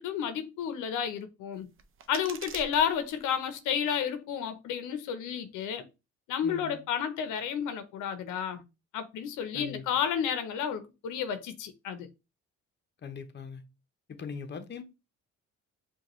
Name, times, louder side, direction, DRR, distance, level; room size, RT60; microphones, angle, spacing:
voice 1, 0.0-1.7 2.1-5.8 6.3-8.6 8.9-12.1, left 8 dB, 85° left, 0.7 m, -31 dB
sound 1, 1.5-3.5, right 6 dB, 45° right, 0.6 m, -47 dB
voice 2, 6.4-6.8 9.5-9.9 13.0-13.6 14.1-14.8, left 6 dB, 35° left, 0.7 m, -40 dB
5.1 x 2.4 x 3.0 m
cardioid pair, 90°, 30 cm